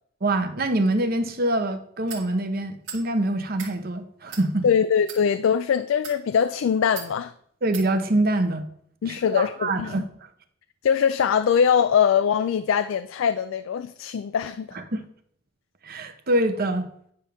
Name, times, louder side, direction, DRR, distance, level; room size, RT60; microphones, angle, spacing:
voice 1, 0.2-4.7 7.6-8.7 9.1-10.0 14.7-15.0 15.8-16.9, right 1 dB, 50° right, 8 dB, 0.9 m, -25 dB
sound 1, 2.1-2.3 2.8-3.0 3.5-3.7 4.3-4.5 5.0-5.2 5.9-6.2 7.0-7.1 7.7-7.9, right 6 dB, 80° right, 2.1 m, -38 dB
voice 2, 4.6-7.3 9.0-10.0 10.8-14.8, left 7 dB, 90° left, 11 dB, 0.4 m, -22 dB
9.8 x 5.8 x 3.5 m, 0.66 s
head